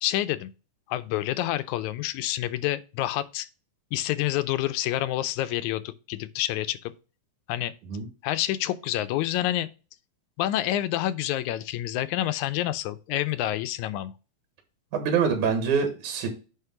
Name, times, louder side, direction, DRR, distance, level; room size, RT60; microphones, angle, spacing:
voice 1, 0.0-0.5 0.9-3.5 3.9-6.9 7.5-7.7 8.2-9.7 10.4-14.1, left 14 dB, 80° left, 2.0 m, -28 dB
voice 2, 14.9-16.3, right 6 dB, 85° right, 2.9 m, -25 dB
9.4 x 3.3 x 5.7 m
omnidirectional pair, 3.4 m